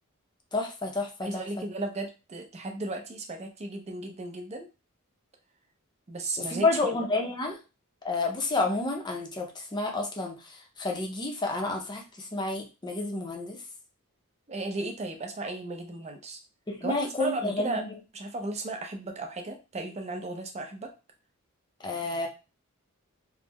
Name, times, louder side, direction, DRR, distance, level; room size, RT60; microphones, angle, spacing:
voice 1, 0.5-1.4 6.4-7.6 8.0-13.6 16.7-17.9 21.8-22.3, left 2 dB, 20° left, 1 dB, 0.6 m, -30 dB
voice 2, 1.2-4.7 6.1-6.9 14.5-16.4 16.8-17.8 18.1-20.9, right 2 dB, 30° right, 4 dB, 0.5 m, -35 dB
3.7 x 2.1 x 2.9 m, 0.30 s
head